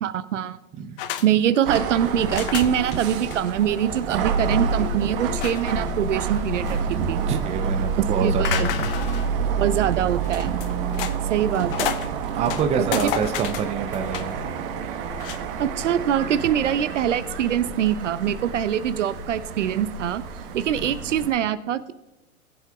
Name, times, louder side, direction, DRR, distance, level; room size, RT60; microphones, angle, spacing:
voice 1, 0.0-0.6 1.2-7.2 8.0-8.7 9.6-10.6 11.3-12.1 12.8-13.1 15.6-20.2 20.5-21.9, right 10 dB, 60° right, 14 dB, 0.7 m, -24 dB
sound 1, 1.0-1.3 1.5-1.8 2.3-3.0 3.3-3.4 3.7-3.8 4.2-4.5 5.4-5.9 6.3-7.1 8.4-9.3 10.2-11.2 11.5-12.1 12.4-14.4 15.1-15.4, left 11 dB, 40° left, 0.7 m, -31 dB
sound 2, 1.7-21.3, right 5 dB, 40° right, 1.3 m, -28 dB
voice 2, 7.3-8.9 12.2-14.4 20.8-21.0, right 6 dB, 15° right, 7 dB, 0.7 m, -27 dB
19.5 x 8.1 x 2.4 m, 1.0 s
figure-of-eight pair, 115°, 42 cm